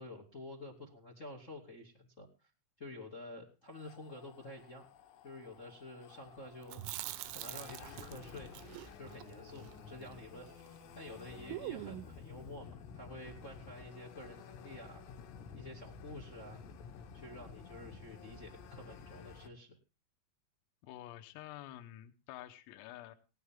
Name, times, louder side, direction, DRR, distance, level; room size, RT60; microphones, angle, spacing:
voice 1, 0.0-2.5 2.8-4.9 5.2-8.5 9.0-10.5 10.9-15.0 15.5-16.6 17.1-19.8, left 1 dB, 35° left, 2 dB, 1.1 m, -50 dB
sound 1, 3.7-19.5, left 6 dB, 65° left, 3.5 m, -52 dB
Chewing mastication, 6.6-10.8 11.1-11.2 11.5-12.2, right 16 dB, 85° right, 3.5 m, -45 dB
voice 2, 20.8-23.2, left 14 dB, 85° left, 6 dB, 3.7 m, -49 dB
20.0 x 12.5 x 3.7 m, 0.33 s
omnidirectional pair, 6.0 m